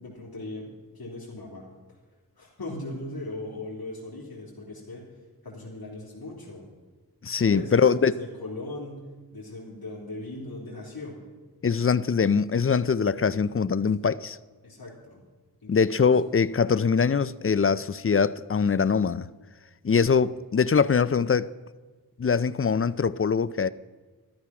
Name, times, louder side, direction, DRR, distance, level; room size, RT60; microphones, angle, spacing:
voice 1, 0.0-2.0 2.4-5.0 5.4-6.7 7.4-9.0 9.3-11.2 13.8-13.9 14.6-15.2 15.6-16.1 19.9-20.2, left 2 dB, 70° left, 3.4 m, -39 dB
voice 2, 7.2-8.1 11.6-14.4 15.7-19.3 19.8-21.5 22.2-23.7, left 6 dB, 35° left, 0.4 m, -23 dB
13.0 x 12.5 x 5.9 m
wide cardioid pair, 60°, 38 cm